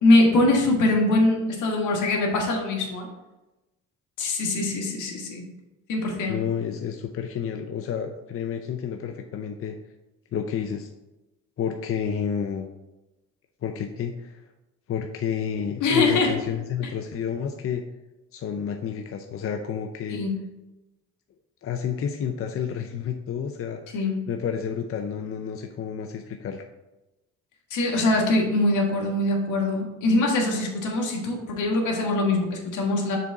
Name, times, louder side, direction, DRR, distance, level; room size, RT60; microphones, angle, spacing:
voice 1, 0.0-3.1 4.2-5.4 5.9-6.4 15.8-16.3 20.1-20.3 23.9-24.1 27.7-33.2, left 2 dB, 80° left, 0 dB, 1.6 m, -22 dB
voice 2, 6.3-9.8 10.3-10.9 11.6-12.7 13.6-14.4 14.9-17.8 18.3-20.2 21.6-23.8 24.3-26.6, left 7 dB, 50° left, 5 dB, 0.6 m, -30 dB
6.7 x 3.8 x 4.7 m, 1.0 s
cardioid pair, 90°, 30 cm